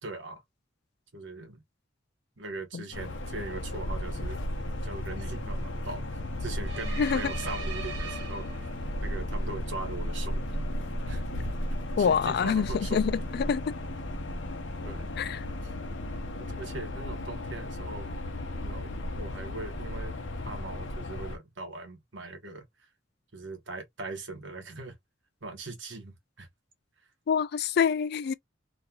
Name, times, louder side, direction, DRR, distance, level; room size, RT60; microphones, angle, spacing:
voice 1, 0.0-0.4 1.1-1.6 2.4-4.4 4.8-8.4 9.0-10.6 11.0-11.2 11.7-13.3 14.8-15.1 15.6-15.7 16.4-18.1 18.6-18.9 19.1-20.1 20.4-22.6 23.3-24.9 25.4-26.5, right 2 dB, 85° right, 1.2 m, -40 dB
sound 1, 2.9-21.4, left 1 dB, 80° left, 0.7 m, -34 dB
sound 2, 6.6-9.0, right 4 dB, 65° right, 1.1 m, -40 dB
voice 2, 7.0-7.3 12.0-13.6 15.2-15.4 27.3-28.3, left 7 dB, 60° left, 0.3 m, -26 dB
2.9 x 2.3 x 2.8 m
head